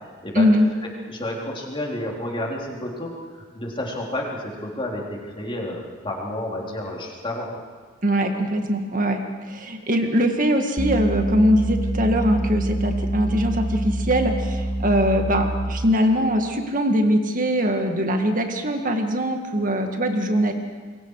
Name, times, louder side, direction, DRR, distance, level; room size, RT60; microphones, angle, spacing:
voice 1, 0.3-0.7 8.0-9.2 9.5-20.5, equal, 40° right, 4 dB, 2.0 m, -21 dB
voice 2, 1.1-7.6, left 1 dB, 25° left, -2 dB, 3.7 m, -30 dB
sound 1, 10.8-16.1, right 1 dB, 5° right, 1.8 m, -26 dB
27.5 x 23.0 x 4.9 m, 1.5 s
head